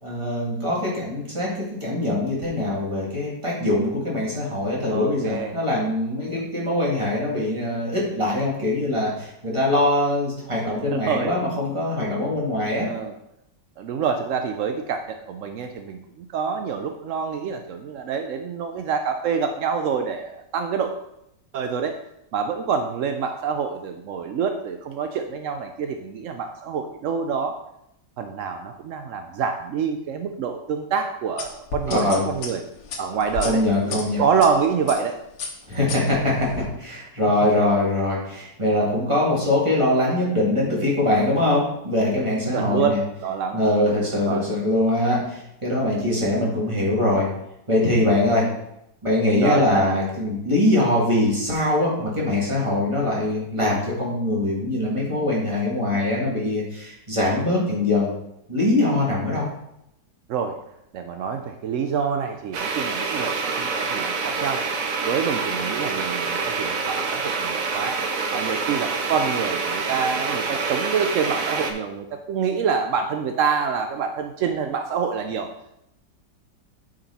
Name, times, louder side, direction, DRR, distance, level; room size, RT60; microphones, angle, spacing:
voice 1, 0.0-12.9 31.9-32.2 33.4-34.2 35.7-36.5 36.8-43.0 43.5-47.3 47.7-48.5 49.0-58.1 58.5-59.5, left 1 dB, 15° right, -5 dB, 2.5 m, -22 dB
voice 2, 4.9-5.5 10.9-11.3 12.8-13.1 13.8-20.9 21.5-21.9 22.3-27.6 28.2-32.6 33.0-35.2 42.5-43.6 44.3-44.4 49.4-50.0 59.3-59.5 60.3-60.6 60.9-64.6 65.0-68.0 68.3-75.5, right 6 dB, 75° right, 6 dB, 0.7 m, -26 dB
sound 1, 31.4-34.5 34.9-35.1 35.4-36.7, left 5 dB, 80° left, 1.9 m, -33 dB
sound 2, 62.5-71.7, right 4 dB, 55° right, 1.2 m, -26 dB
9.0 x 5.2 x 4.2 m, 0.80 s
omnidirectional pair, 1.9 m